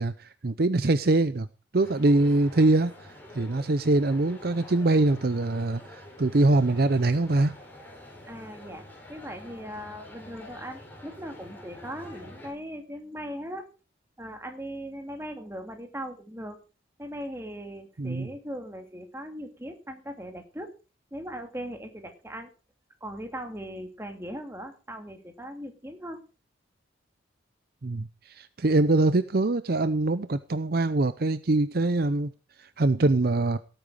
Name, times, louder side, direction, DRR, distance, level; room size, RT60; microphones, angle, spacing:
voice 1, 0.0-1.5 1.7-2.9 3.3-7.5 18.0-18.3 27.8-32.3 32.6-33.6, right 2 dB, 50° right, 13 dB, 0.6 m, -23 dB
sound 1, 1.7-12.5, left 1 dB, 10° left, 4.6 m, -47 dB
voice 2, 8.3-8.8 9.1-13.7 14.2-16.6 17.0-20.7 21.1-22.5 23.0-26.2, equal, 15° right, 5 dB, 2.6 m, -39 dB
17.5 x 9.0 x 4.9 m, 0.33 s
head